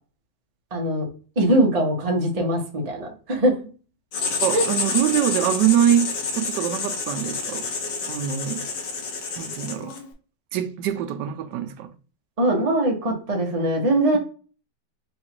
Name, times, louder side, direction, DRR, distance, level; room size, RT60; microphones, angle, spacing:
voice 1, 0.7-1.1 1.4-3.5 4.5-4.6 12.4-14.2, right 1 dB, 30° right, 0.7 m, -21 dB
Writing, 4.1-10.1, left 4 dB, 70° left, 1.5 m, -28 dB
voice 2, 4.4-7.7 8.1-8.7 9.4-10.0 10.5-11.9, right 10 dB, 75° right, 1.2 m, -24 dB
3.9 x 2.4 x 4.3 m
omnidirectional pair, 2.0 m